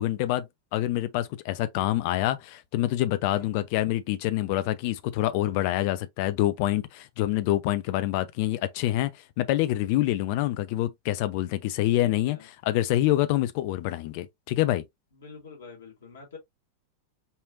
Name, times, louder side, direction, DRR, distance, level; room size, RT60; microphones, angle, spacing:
voice 1, 0.0-12.4 12.7-14.8, left 14 dB, 45° left, 0.7 m, -26 dB
voice 2, 3.4-3.7 12.0-12.5 15.1-16.4, left 5 dB, 65° left, 2.6 m, -46 dB
5.5 x 3.3 x 2.5 m
figure-of-eight pair, 90°, 0 cm